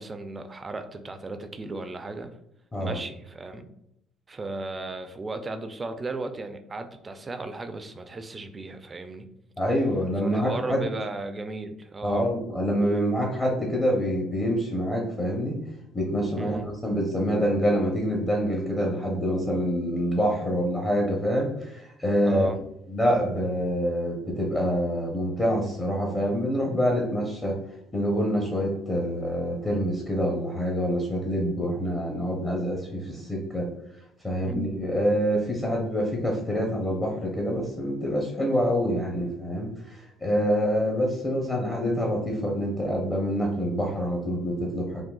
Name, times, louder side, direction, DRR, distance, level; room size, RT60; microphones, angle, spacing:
voice 1, 0.0-2.4 2.8-3.7 4.3-9.3 10.2-12.3 16.4-16.7 22.2-22.6 34.4-34.8, right 3 dB, 30° right, 8 dB, 0.3 m, -35 dB
voice 2, 9.6-10.8 12.0-15.6 15.9-22.5 22.9-27.6 27.9-33.7 34.2-45.0, equal, 20° left, -2 dB, 0.7 m, -26 dB
3.6 x 2.3 x 2.3 m, 0.79 s
supercardioid pair, 85°, 0 cm